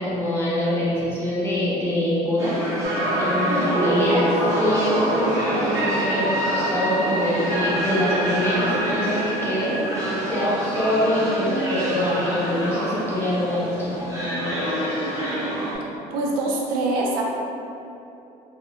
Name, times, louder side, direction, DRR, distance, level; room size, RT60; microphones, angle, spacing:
voice 1, 0.0-2.6 2.9-9.8 10.3-14.6, left 1 dB, 15° left, -9 dB, 0.8 m, -25 dB
sound 1, 2.4-15.8, right 1 dB, 20° right, 0.6 m, -27 dB
sound 2, 2.8-12.9 13.2-13.3, right 1 dB, 60° right, 1.0 m, -27 dB
voice 2, 16.1-17.2, right 2 dB, 85° right, -2 dB, 0.5 m, -24 dB
2.8 x 2.5 x 2.4 m, 2.7 s
cardioid pair, 135°, 15 cm